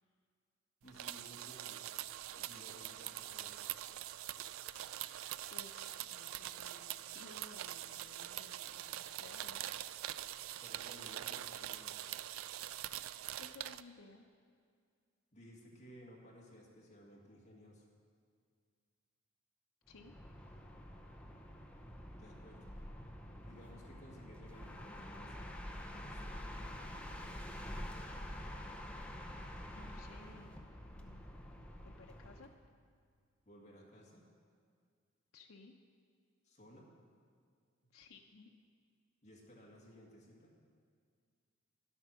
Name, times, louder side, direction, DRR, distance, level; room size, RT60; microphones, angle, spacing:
voice 1, 0.8-1.9 2.4-3.6 10.6-12.2 15.3-17.9 22.1-22.7 23.4-25.5 25.9-27.5 33.4-34.3 36.4-36.9 39.2-40.5, equal, 35° left, -3 dB, 1.9 m, -58 dB
sound 1, 0.9-13.8, right 13 dB, 75° right, 0.3 m, -44 dB
voice 2, 4.7-5.2 5.5-9.6 13.4-14.2 19.9-20.1 29.7-30.6 31.0-31.4 31.8-32.5 35.3-35.7 37.9-38.5, left 3 dB, 85° left, 2 dB, 0.7 m, -58 dB
sound 2, 19.9-32.6, equal, 5° left, 0.7 m, -47 dB
11.0 x 8.0 x 6.1 m, 2.1 s
head